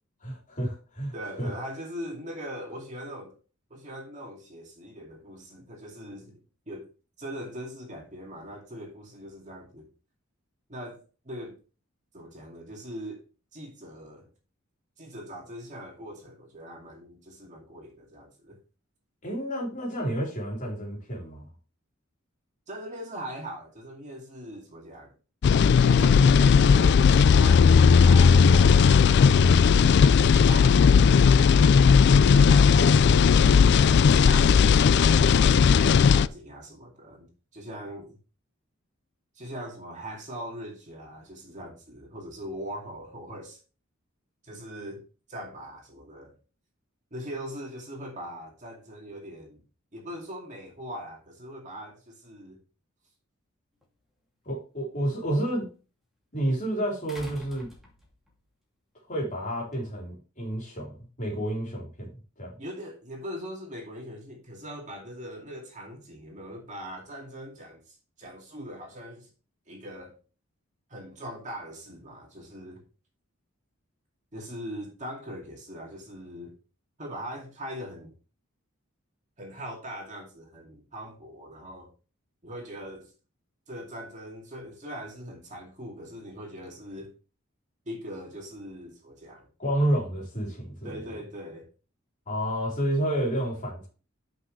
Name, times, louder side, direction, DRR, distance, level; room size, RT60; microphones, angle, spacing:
voice 1, 0.2-1.5 19.2-21.5 32.5-33.2 54.5-55.7 56.3-57.7 59.1-62.1 62.4-62.5 89.6-91.1 92.3-93.9, right 1 dB, 40° left, 4.0 m, -30 dB
voice 2, 1.1-3.4 3.7-6.4 6.7-6.9 7.2-9.9 10.7-11.6 12.1-13.2 13.5-14.3 15.0-18.6 22.7-25.1 25.8-29.9 30.2-31.5 32.2-33.0 34.2-35.7 36.1-38.2 39.4-43.6 44.4-45.0 45.3-46.3 47.1-49.6 49.9-52.6 62.6-69.3 69.7-70.2 70.9-72.8 74.3-76.5 77.0-78.1 79.4-81.9 82.4-83.1 83.7-87.1 87.9-89.5 90.8-91.7, equal, 35° right, 2.4 m, -41 dB
sound 1, 25.4-36.3, left 6 dB, 55° left, 0.3 m, -17 dB
sound 2, 53.8-53.9 57.1-58.4 59.7-59.8, left 1 dB, ahead, 2.4 m, -46 dB
10.0 x 6.0 x 3.2 m
head